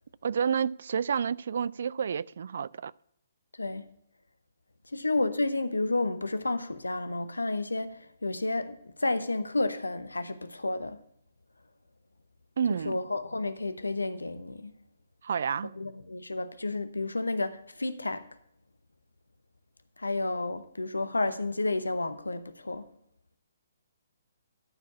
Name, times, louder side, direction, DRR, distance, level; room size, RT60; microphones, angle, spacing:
voice 1, 0.2-2.9 12.6-13.0 15.2-15.7, right 7 dB, 60° right, 0.3 m, -29 dB
voice 2, 4.9-11.0 12.8-14.7 15.7-18.2 20.0-22.8, left 2 dB, 85° left, 0.9 m, -31 dB
12.0 x 4.6 x 8.3 m
figure-of-eight pair, 135°, 0 cm